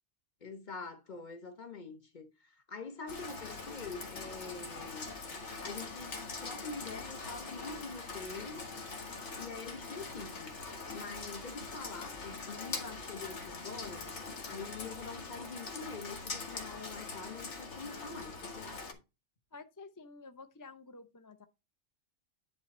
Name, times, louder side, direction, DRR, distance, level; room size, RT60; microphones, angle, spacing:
voice 1, 0.4-5.1 5.6-8.7 9.4-10.5 10.9-14.1 14.4-19.0, left 4 dB, 40° left, 1.2 m, -45 dB
Rain, 3.1-18.9, left 3 dB, 75° left, 1.9 m, -43 dB
voice 2, 19.5-21.5, left 3 dB, 25° left, 0.5 m, -51 dB
10.5 x 3.9 x 4.3 m
omnidirectional pair, 1.2 m